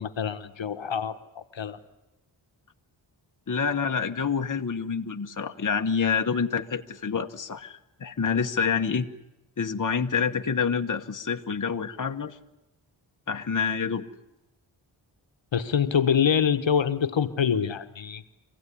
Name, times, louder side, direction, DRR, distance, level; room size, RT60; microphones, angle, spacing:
voice 1, 0.0-1.8 15.5-18.2, left 7 dB, 75° left, 9 dB, 1.3 m, -25 dB
voice 2, 3.5-9.1 9.6-12.4 13.3-14.1, left 6 dB, 40° left, 6 dB, 1.2 m, -27 dB
25.5 x 17.0 x 10.0 m, 0.95 s
wide cardioid pair, 75°, 46 cm